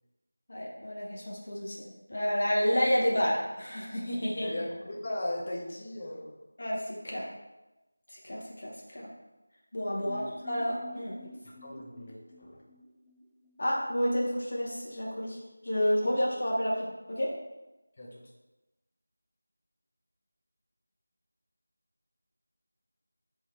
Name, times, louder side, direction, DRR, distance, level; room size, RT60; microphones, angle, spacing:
voice 1, 0.5-1.8 2.1-4.5 6.6-7.2 8.1-9.1 9.7-11.1 13.6-15.4 15.6-17.3, equal, 45° left, -4 dB, 1.0 m, -30 dB
voice 2, 4.4-6.4 9.9-10.3 11.6-12.6 18.0-18.3, left 1 dB, 30° left, -3 dB, 0.7 m, -38 dB
sound 1, 10.0-13.9 14.2-14.3 14.6-14.7, left 1 dB, 5° right, 0.3 m, -48 dB
3.9 x 3.1 x 3.5 m, 1.0 s
figure-of-eight pair, 170°, 0 cm